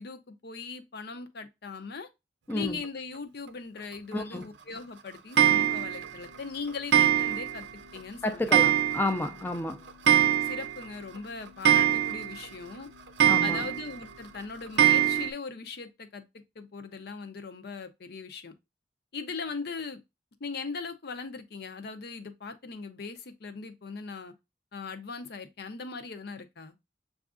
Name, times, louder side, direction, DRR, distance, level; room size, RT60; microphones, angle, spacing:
voice 1, 0.0-2.1 2.5-7.7 7.9-8.7 10.4-12.9 13.4-18.5 19.1-20.0 20.4-24.3 24.7-26.8, left 4 dB, 60° left, 0.6 m, -39 dB
voice 2, 2.5-2.8 4.1-4.5 8.2-9.8 13.2-13.6, left 1 dB, 10° left, 0.4 m, -31 dB
Clock, 5.4-6.1 6.9-7.7 8.0-8.1 8.5-9.3 9.5-9.6 9.9-10.8 11.2-11.3 11.7-12.5 13.2-13.9 14.8-15.3, right 10 dB, 75° right, 0.5 m, -23 dB
7.0 x 2.4 x 2.4 m
head